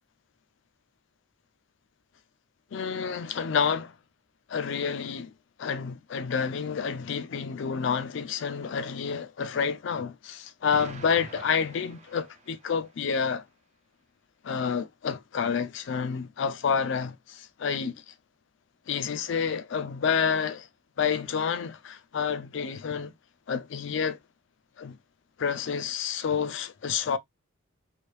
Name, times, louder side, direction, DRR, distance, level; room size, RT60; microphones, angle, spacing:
voice 1, 2.7-3.9 4.5-5.3 5.6-13.5 14.4-18.1 18.9-20.7 21.0-23.1 23.5-24.2 24.8-25.0 25.4-27.2, left 6 dB, 55° left, 0.4 m, -29 dB
Explosion, 10.7-12.9, right 4 dB, 30° right, 0.3 m, -46 dB
3.2 x 2.6 x 3.1 m
head